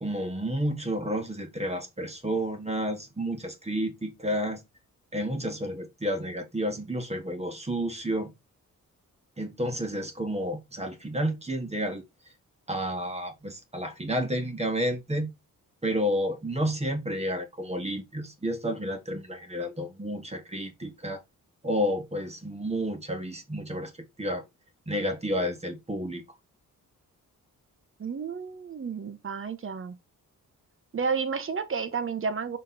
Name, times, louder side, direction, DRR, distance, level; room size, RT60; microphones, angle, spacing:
voice 1, 0.0-4.6 5.1-8.3 9.4-12.0 12.7-15.3 15.8-21.2 21.6-23.9 24.2-24.4 24.9-26.2, equal, 20° right, 1.4 m, -30 dB
voice 2, 28.0-29.9 30.9-32.6, right 5 dB, 40° right, 1.2 m, -31 dB
6.2 x 4.2 x 4.2 m
wide cardioid pair, 125°, 33 cm